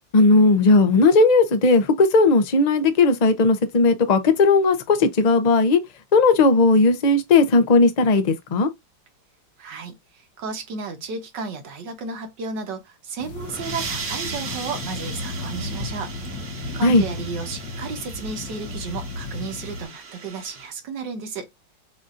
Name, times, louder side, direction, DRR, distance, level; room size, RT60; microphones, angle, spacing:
voice 1, 0.1-5.8 6.1-8.7 16.8-17.0, left 3 dB, 50° left, 0.5 m, -17 dB
voice 2, 9.6-16.1 16.4-21.5, right 4 dB, 70° right, 1.8 m, -33 dB
sound 1, 13.2-19.8, left 3 dB, 75° left, 1.6 m, -34 dB
sound 2, 13.3-20.7, right 5 dB, 45° right, 1.2 m, -37 dB
6.9 x 2.7 x 2.5 m
omnidirectional pair, 2.0 m